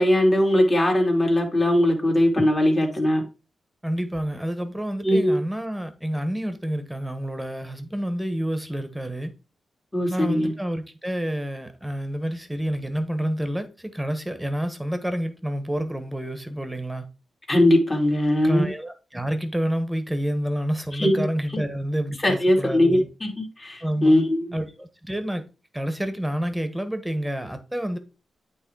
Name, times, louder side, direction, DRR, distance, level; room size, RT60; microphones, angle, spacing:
voice 1, 0.0-3.2 5.0-5.4 9.9-10.5 17.5-18.7 20.9-21.2 22.2-24.5, left 1 dB, 25° left, 2.6 m, -20 dB
voice 2, 3.8-9.3 10.1-17.0 18.4-23.1 23.8-24.2 24.5-25.4 25.7-28.0, equal, 5° right, 1.4 m, -28 dB
8.7 x 3.3 x 4.8 m
cardioid pair, 55°, 0 cm